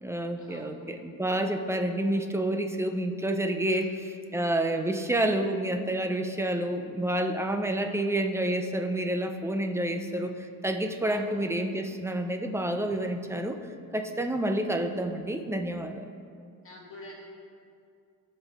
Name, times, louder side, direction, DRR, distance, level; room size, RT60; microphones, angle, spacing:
voice 1, 0.0-13.6 13.9-16.1, right 1 dB, 5° right, 6 dB, 0.4 m, -29 dB
voice 2, 16.6-17.2, left 1 dB, 35° left, -4 dB, 2.2 m, -45 dB
16.0 x 5.4 x 3.5 m, 2.3 s
cardioid pair, 145°, 38 cm